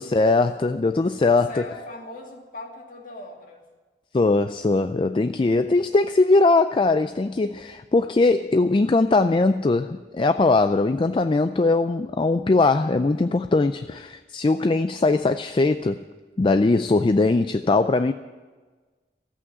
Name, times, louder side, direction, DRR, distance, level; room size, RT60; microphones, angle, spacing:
voice 1, 0.0-1.5 4.1-16.0 16.4-18.1, left 3 dB, 30° left, 10 dB, 0.4 m, -20 dB
voice 2, 1.3-3.6 5.4-5.5, left 2 dB, 50° left, 1 dB, 2.5 m, -40 dB
14.0 x 8.4 x 9.7 m, 1.3 s
head